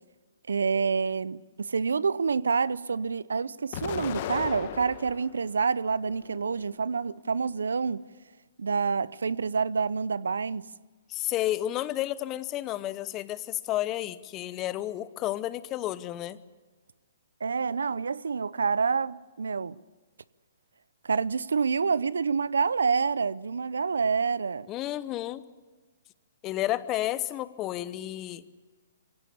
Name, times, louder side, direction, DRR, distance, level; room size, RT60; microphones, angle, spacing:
voice 1, 0.5-8.0 8.6-10.7 17.4-19.8 21.0-24.7, right 5 dB, 80° right, 0.6 m, -27 dB
Explosion, 3.7-5.4 5.9-6.8, left 11 dB, 45° left, 1.3 m, -37 dB
voice 2, 11.1-16.4 24.7-25.4 26.4-28.4, left 14 dB, 25° left, 0.9 m, -31 dB
23.0 x 17.0 x 8.5 m
hypercardioid pair, 130°, 0 cm